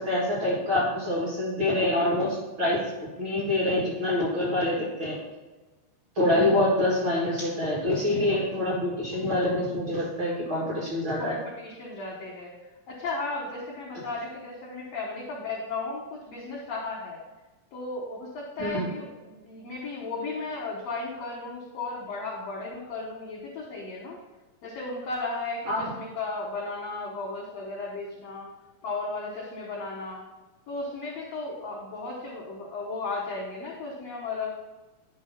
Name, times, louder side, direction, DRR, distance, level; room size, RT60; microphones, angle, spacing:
voice 1, 0.0-5.2 6.2-11.4 13.9-14.0 18.6-18.9 25.7-26.0, left 1 dB, 45° right, -5 dB, 1.8 m, -26 dB
voice 2, 11.2-12.5 12.9-17.2 17.7-24.2 24.6-28.5 28.8-30.2 30.7-34.5, left 3 dB, 70° left, -2 dB, 1.6 m, -35 dB
10.0 x 3.6 x 5.7 m, 1.2 s
omnidirectional pair, 4.4 m